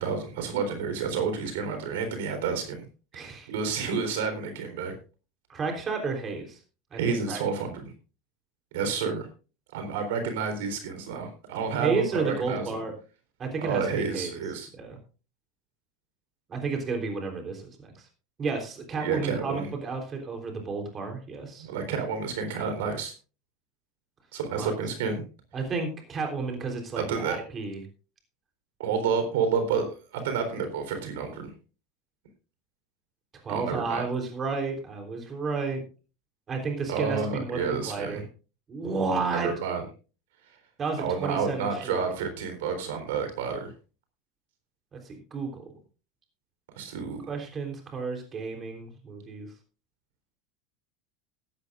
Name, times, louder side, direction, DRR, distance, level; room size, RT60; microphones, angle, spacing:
voice 1, 0.0-2.8 3.5-4.9 6.9-7.9 8.7-9.3 9.7-12.8 13.6-14.7 19.0-19.7 21.6-23.1 24.3-25.2 27.0-27.4 28.8-31.5 33.5-34.1 36.9-38.2 39.3-39.8 41.0-43.7 46.8-47.2, right 5 dB, 90° right, 7 dB, 3.8 m, -30 dB
voice 2, 3.1-3.5 5.5-6.6 6.9-7.7 11.8-12.9 13.4-14.4 14.8-15.0 16.5-18.1 18.4-21.7 24.6-24.7 25.5-27.8 30.5-30.6 33.4-35.8 36.5-38.2 38.7-39.5 40.8-42.0 44.9-45.6 47.3-49.5, right 4 dB, 25° right, 4 dB, 3.6 m, -32 dB
16.0 x 12.0 x 2.5 m, 0.34 s
supercardioid pair, 135°, 0 cm